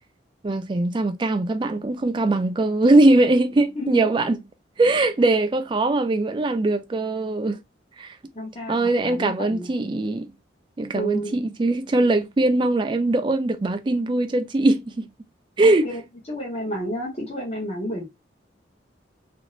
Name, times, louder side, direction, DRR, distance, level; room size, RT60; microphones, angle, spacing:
voice 1, 0.4-4.4 4.8-7.6 8.0-8.1 8.7-10.3 10.8-15.1 15.6-15.9, right 2 dB, 25° right, 0.3 m, -21 dB
voice 2, 3.7-4.1 8.3-9.7 10.9-11.4 15.6-16.0 16.3-18.0, equal, 35° left, 0.8 m, -31 dB
2.5 x 2.4 x 3.0 m
head